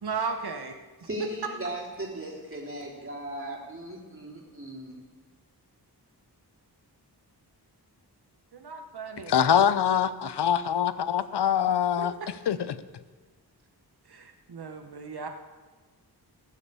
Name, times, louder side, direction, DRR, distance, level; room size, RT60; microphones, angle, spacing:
voice 1, 0.0-0.8 8.5-9.3 12.0-12.3 14.1-15.3, right 5 dB, 70° right, 5 dB, 1.1 m, -35 dB
voice 2, 1.0-5.0, right 1 dB, 30° right, -3 dB, 3.7 m, -37 dB
voice 3, 9.3-12.1 12.5-12.8, left 9 dB, 80° left, 14 dB, 0.7 m, -24 dB
18.5 x 7.1 x 7.0 m, 1.4 s
wide cardioid pair, 100°, 40 cm